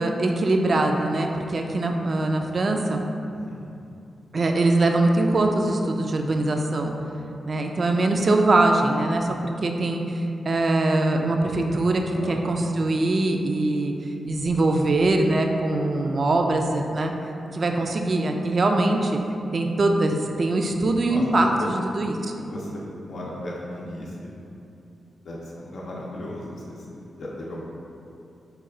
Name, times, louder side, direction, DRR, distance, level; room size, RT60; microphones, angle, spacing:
voice 1, 0.0-3.0 4.3-6.9 7.5-9.4 9.6-10.2 10.5-13.9 14.2-17.1 17.5-19.2 19.5-22.3, right 2 dB, 55° right, 3 dB, 0.3 m, -22 dB
voice 2, 3.3-3.6 7.0-7.2 12.0-12.4 16.2-16.3 21.1-21.2 21.6-21.7 22.4-24.3 25.2-27.7, left 1 dB, 70° left, -5 dB, 0.5 m, -36 dB
4.1 x 2.3 x 3.7 m, 2.7 s
cardioid pair, 60°, 0 cm